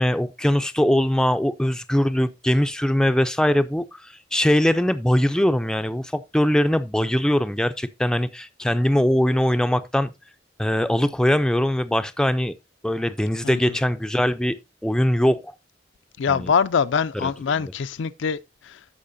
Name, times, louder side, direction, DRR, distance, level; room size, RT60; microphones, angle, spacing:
voice 1, 0.0-10.1 10.6-12.5 12.8-14.6 14.8-15.4 16.3-16.5 17.2-17.3, equal, 5° left, 0.4 m, -21 dB
voice 2, 13.4-13.8 16.2-18.8, left 6 dB, 85° left, 0.4 m, -24 dB
15.0 x 5.5 x 2.6 m
head